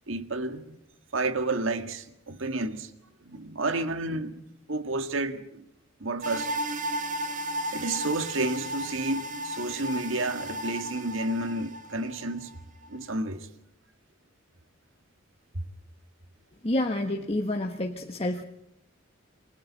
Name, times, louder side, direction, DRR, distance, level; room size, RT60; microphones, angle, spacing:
voice 1, 0.1-0.8 1.1-2.9 3.2-4.3 4.7-5.6 6.0-6.6 7.7-12.5 12.9-13.5, right 2 dB, 75° right, 1.9 m, -31 dB
sound 1, 6.2-12.6 12.8-12.9, equal, 40° right, 1.7 m, -34 dB
voice 2, 16.6-18.4, left 1 dB, 30° left, 1.4 m, -28 dB
30.0 x 22.5 x 4.2 m
head